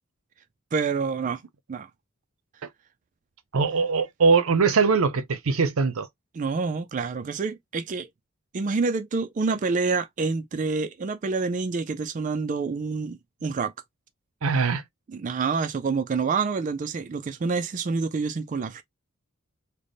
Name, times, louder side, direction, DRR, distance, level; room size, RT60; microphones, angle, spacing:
voice 1, 0.7-1.4 1.7-1.9 6.3-8.1 8.5-13.7 15.1-18.8, right 4 dB, 35° right, 0.3 m, -27 dB
voice 2, 3.5-6.1 14.4-14.8, right 4 dB, 80° right, 0.6 m, -21 dB
3.4 x 2.1 x 3.9 m
head